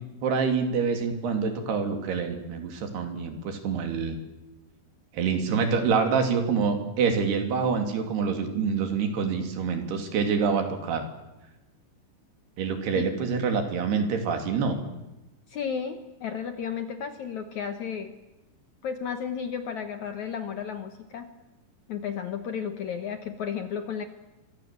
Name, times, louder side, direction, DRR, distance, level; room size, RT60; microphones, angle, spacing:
voice 1, 0.2-4.2 5.1-11.0 12.6-14.8, right 5 dB, 75° right, 5 dB, 4.6 m, -26 dB
voice 2, 15.5-18.1 18.8-21.3 21.9-24.0, left 7 dB, 65° left, 7 dB, 2.0 m, -33 dB
27.5 x 24.5 x 7.5 m, 1.0 s
omnidirectional pair, 4.7 m